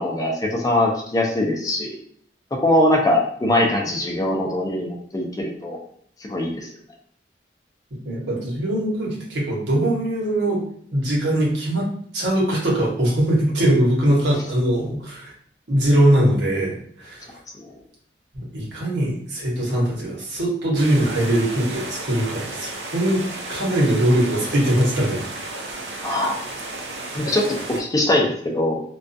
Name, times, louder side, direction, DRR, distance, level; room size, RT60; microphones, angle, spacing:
voice 1, 0.0-2.0 2.5-5.8 6.2-6.7 26.0-26.4 27.2-28.8, left 1 dB, 20° left, 0 dB, 0.4 m, -22 dB
voice 2, 8.0-10.7 10.9-11.9 12.1-15.3 15.7-17.4 18.3-23.2 23.5-25.2 26.0-26.1, right 1 dB, 85° right, -3 dB, 0.9 m, -21 dB
sound 1, 20.7-27.8, right 2 dB, 70° right, 0.5 m, -33 dB
2.3 x 2.2 x 2.5 m, 0.63 s
head